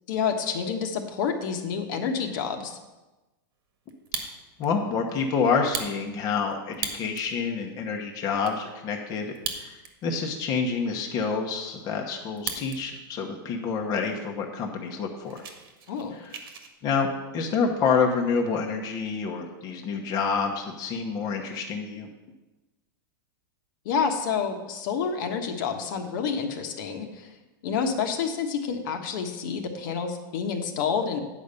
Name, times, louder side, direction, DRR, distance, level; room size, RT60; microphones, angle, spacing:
voice 1, 0.1-2.8 15.9-16.1 23.8-27.3 27.6-31.2, left 6 dB, 60° left, 4 dB, 1.3 m, -28 dB
Fire, 3.9-4.7 5.1-5.2 5.6-7.3 7.8-7.9 8.1-8.6 9.3-10.1 10.4-10.5 11.0-12.8 13.1-13.6 14.1-14.2 14.5-14.7 15.0-16.7, right 6 dB, 80° right, 1.6 m, -36 dB
voice 2, 4.6-15.4 16.1-16.4 16.8-17.1 17.3-22.1, left 5 dB, 30° left, 1 dB, 1.1 m, -28 dB
9.4 x 5.2 x 6.8 m, 1.1 s
supercardioid pair, 150°, 12 cm